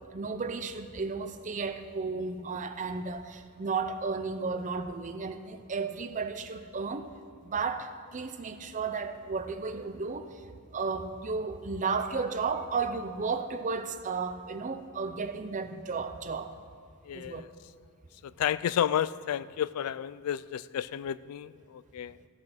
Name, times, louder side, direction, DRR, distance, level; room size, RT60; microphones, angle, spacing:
voice 1, 0.1-7.0 7.4-10.3 10.7-16.5 17.1-17.5, right 4 dB, 35° right, 9 dB, 0.6 m, -33 dB
voice 2, 17.0-17.5 18.2-22.2, left 9 dB, 85° left, 18 dB, 0.3 m, -31 dB
14.5 x 6.5 x 5.7 m, 2.4 s
head